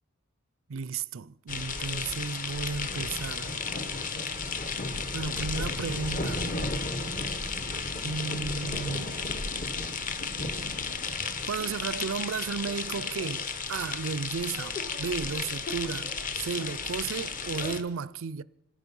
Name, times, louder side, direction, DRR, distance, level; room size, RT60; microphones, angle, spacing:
voice 1, 0.7-3.5 5.1-6.5 8.0-9.1 11.4-18.4, right 5 dB, 65° right, 0.5 m, -34 dB
sound 1, 1.5-17.8, left 4 dB, 35° left, 1.0 m, -33 dB
26.0 x 10.0 x 5.4 m
head